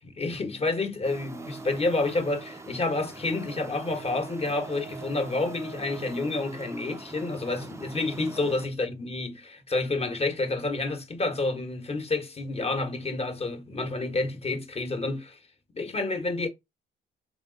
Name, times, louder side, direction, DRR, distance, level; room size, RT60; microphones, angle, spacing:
voice 1, 0.2-15.4 15.7-16.5, left 2 dB, 30° left, 1.1 m, -29 dB
sound 1, 1.0-8.7, right 3 dB, 15° right, 0.5 m, -42 dB
3.5 x 3.0 x 3.7 m
cardioid pair, 90°, 20 cm